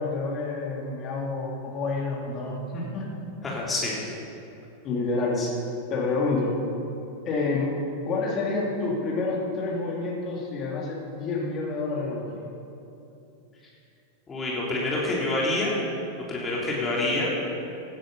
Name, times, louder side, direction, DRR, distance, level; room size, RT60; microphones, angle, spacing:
voice 1, 0.0-3.1 4.8-5.4 5.9-6.5 7.2-7.8 8.1-12.4, left 3 dB, 35° left, -2 dB, 3.2 m, -28 dB
voice 2, 3.4-4.1 5.4-5.5 14.3-15.8 16.2-17.3, left 2 dB, 20° left, -5 dB, 3.2 m, -27 dB
17.5 x 10.5 x 5.6 m, 2.8 s
figure-of-eight pair, 90°, 0 cm